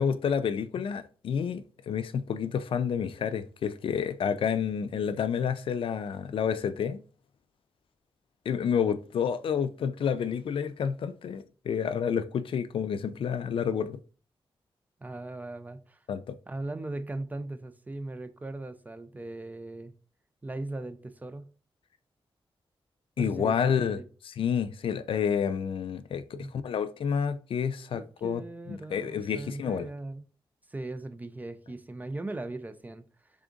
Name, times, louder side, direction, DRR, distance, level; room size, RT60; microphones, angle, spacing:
voice 1, 0.0-7.0 8.5-14.0 16.1-16.4 23.2-24.0 24.2-28.4 28.7-29.9, left 7 dB, 75° left, 0.4 m, -29 dB
voice 2, 15.0-16.0 16.5-19.9 20.4-21.5 23.2-23.6 23.9-24.1 26.3-26.5 27.9-30.2 30.7-33.0, right 2 dB, 15° right, 0.3 m, -38 dB
3.7 x 3.5 x 3.8 m
wide cardioid pair, 165°, 9 cm